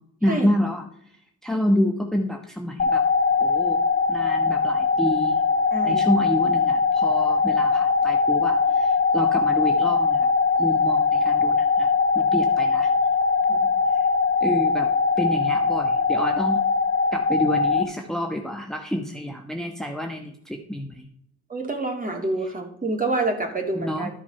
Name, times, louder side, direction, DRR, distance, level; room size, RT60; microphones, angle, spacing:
voice 1, 0.2-0.9 1.4-3.0 3.4-3.8 4.1-5.4 5.8-10.3 10.6-11.9 12.1-12.9 13.9-14.1 14.4-14.9 15.2-16.6 17.1-21.1 23.7-24.1, equal, ahead, 3 dB, 1.1 m, -28 dB
sound 1, 2.8-17.8, left 4 dB, 35° left, 1.8 m, -21 dB
voice 2, 5.7-6.0 13.5-13.6 21.5-24.1, right 2 dB, 30° right, 3 dB, 2.9 m, -27 dB
13.0 x 5.9 x 5.6 m, 0.73 s
cardioid pair, 90°, 30 cm